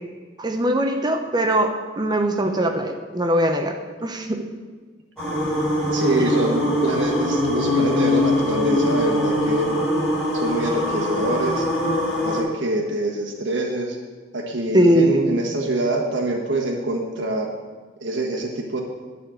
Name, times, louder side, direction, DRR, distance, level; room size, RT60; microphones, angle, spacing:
voice 1, 0.4-3.8 4.0-4.4 14.7-15.3, right 1 dB, 25° right, 5 dB, 0.8 m, -20 dB
sound 1, 5.2-12.4, left 1 dB, 5° left, 3.3 m, -22 dB
voice 2, 5.9-9.7 10.3-11.6 12.2-14.0 14.3-17.5 18.0-18.8, right 2 dB, 85° right, 0 dB, 1.5 m, -25 dB
12.5 x 4.3 x 7.7 m, 1.4 s
head